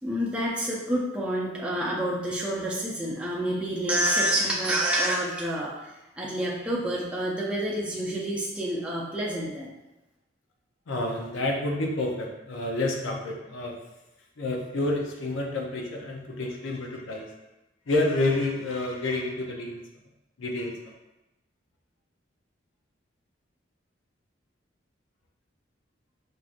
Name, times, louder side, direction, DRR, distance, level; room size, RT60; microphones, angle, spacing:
voice 1, 0.0-9.7, right 1 dB, 5° right, -6 dB, 0.4 m, -28 dB
voice 2, 10.9-13.8 14.4-17.3 17.9-19.8 20.4-21.0, left 2 dB, 85° left, 1 dB, 0.6 m, -29 dB
4.6 x 2.5 x 2.5 m, 0.96 s
head